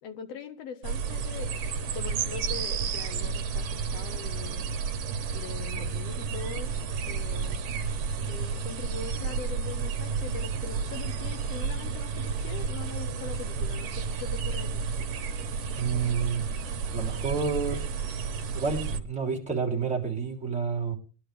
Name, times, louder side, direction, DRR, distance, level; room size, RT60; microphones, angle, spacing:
voice 1, 0.0-1.5 1.9-4.7 5.3-6.7 7.1-7.6 8.3-14.8, left 6 dB, 65° left, 2.1 m, -42 dB
sound 1, 0.8-19.0, right 5 dB, 65° right, 2.0 m, -31 dB
voice 2, 15.8-16.5 16.9-17.8 18.5-20.9, right 5 dB, ahead, 2.8 m, -29 dB
21.0 x 11.5 x 3.4 m
omnidirectional pair, 3.3 m